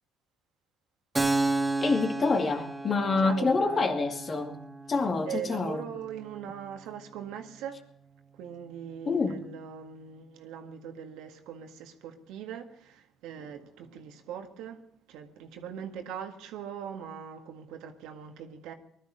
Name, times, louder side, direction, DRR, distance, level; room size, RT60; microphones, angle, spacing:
Keyboard (musical), 1.1-8.5, right 2 dB, 10° right, 1.7 m, -34 dB
voice 1, 1.8-4.6 4.9-5.8 9.1-9.4, left 4 dB, 40° left, 2.4 m, -27 dB
voice 2, 3.2-4.0 5.3-7.8 8.3-18.7, right 8 dB, 75° right, 1.8 m, -41 dB
20.0 x 12.5 x 5.1 m
supercardioid pair, 70°, 0 cm